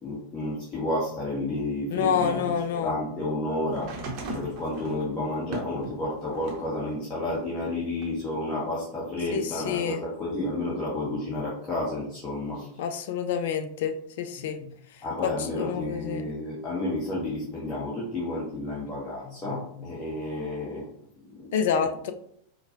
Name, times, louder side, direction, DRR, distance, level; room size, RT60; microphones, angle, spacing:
voice 1, 0.0-3.9 4.3-12.7 15.0-21.5, left 1 dB, 25° left, -7 dB, 1.2 m, -31 dB
voice 2, 1.9-2.9 9.3-10.0 11.3-11.4 12.8-14.7 15.2-16.2 19.5-19.6 21.5-22.1, left 7 dB, 55° left, 8 dB, 0.4 m, -28 dB
sound 1, 3.7-6.7 7.2-8.4 9.4-9.5, right 2 dB, 40° right, 0.8 m, -39 dB
4.6 x 2.2 x 2.8 m, 0.66 s
figure-of-eight pair, 90°, 0 cm